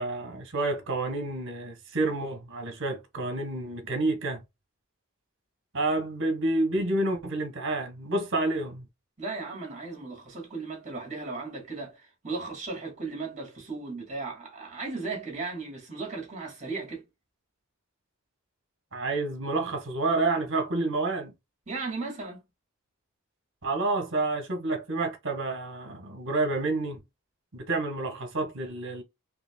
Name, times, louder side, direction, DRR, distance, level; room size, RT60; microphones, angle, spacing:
voice 1, 0.0-4.4 5.7-8.9 18.9-21.3 23.6-27.0 27.5-29.0, right 2 dB, 55° right, 1.3 m, -29 dB
voice 2, 9.2-17.0 21.7-22.4, right 3 dB, 30° right, 2.2 m, -36 dB
5.0 x 3.0 x 2.2 m
head